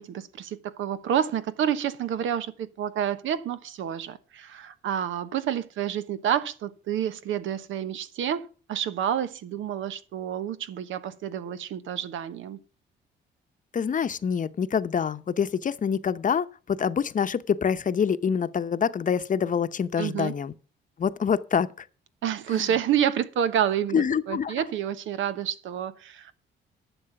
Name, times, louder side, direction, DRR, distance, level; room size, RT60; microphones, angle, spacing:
voice 1, 0.0-12.6 20.0-20.3 22.2-26.3, right 9 dB, 80° right, 1.1 m, -29 dB
voice 2, 13.7-20.5 21.0-21.7 22.5-22.7 23.9-24.6, left 7 dB, 40° left, 0.8 m, -26 dB
11.0 x 7.2 x 5.9 m
cardioid pair, 90°, 20 cm